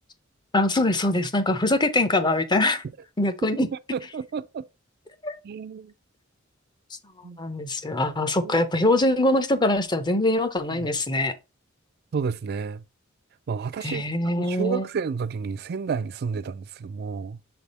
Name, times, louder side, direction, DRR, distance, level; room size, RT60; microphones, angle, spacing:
voice 1, 0.5-2.8 3.2-3.7 5.2-5.3 7.4-11.3 13.8-14.9, left 2 dB, 20° left, 0.6 m, -23 dB
voice 2, 3.6-4.7 5.4-5.9 7.2-7.4 8.4-8.6 10.7-10.9 12.1-12.8 13.5-14.1 14.4-17.4, right 5 dB, 50° right, 0.4 m, -31 dB
6.7 x 3.4 x 4.1 m
head